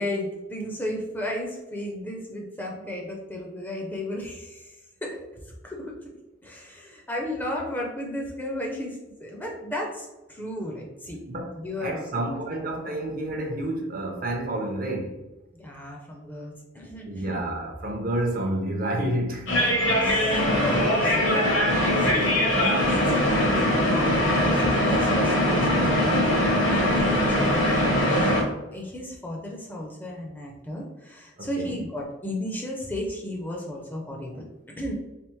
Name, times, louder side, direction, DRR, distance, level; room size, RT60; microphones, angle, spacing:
voice 1, 0.0-5.2 5.4-5.9 6.4-11.2 11.5-12.4 15.5-17.5 20.0-21.7 21.9-22.3 22.5-28.4 28.7-34.4 34.8-34.9, left 1 dB, 10° left, 0.5 m, -34 dB
voice 2, 11.8-15.2 17.0-19.5 31.4-31.7, right 1 dB, 45° right, 0.6 m, -29 dB
sound 1, 19.5-28.4, left 1 dB, 70° left, 1.2 m, -22 dB
3.4 x 3.4 x 3.1 m
head